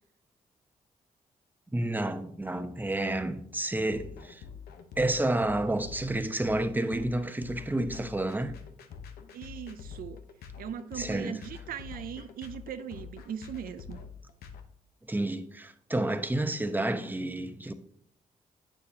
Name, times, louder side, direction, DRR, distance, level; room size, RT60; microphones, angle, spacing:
voice 1, 1.7-4.4 5.0-8.6 10.9-11.4 15.1-17.7, right 1 dB, 10° right, 0.8 m, -30 dB
sound 1, 3.9-14.6, left 7 dB, 80° left, 0.8 m, -45 dB
voice 2, 9.3-10.2 10.6-14.0, right 8 dB, 70° right, 0.5 m, -39 dB
8.7 x 6.9 x 2.8 m
supercardioid pair, 50°, 16 cm